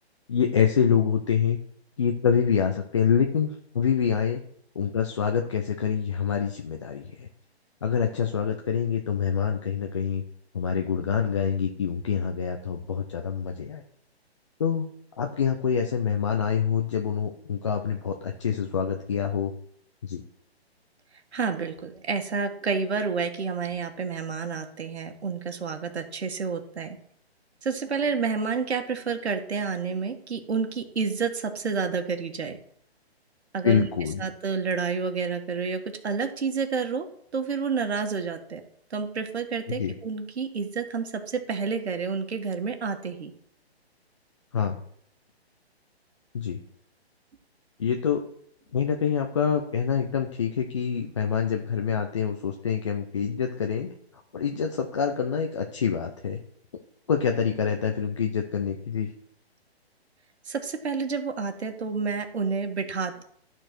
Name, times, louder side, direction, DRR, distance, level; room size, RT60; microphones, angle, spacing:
voice 1, 0.3-1.6 2.0-4.4 4.8-7.3 7.8-10.2 10.5-13.8 14.6-14.9 15.2-19.5 20.0-20.2 33.6-34.2 39.7-39.9 44.5-44.8 46.3-46.6 47.8-48.2 48.7-53.9 54.3-56.4 57.1-59.1, left 7 dB, 30° left, 3 dB, 0.6 m, -26 dB
voice 2, 21.3-27.0 27.6-32.6 33.5-33.9 34.2-37.1 37.3-38.6 38.9-43.3 60.5-63.2, right 5 dB, 75° right, 6 dB, 1.7 m, -29 dB
12.0 x 4.5 x 6.0 m, 0.66 s
hypercardioid pair, 165°, 33 cm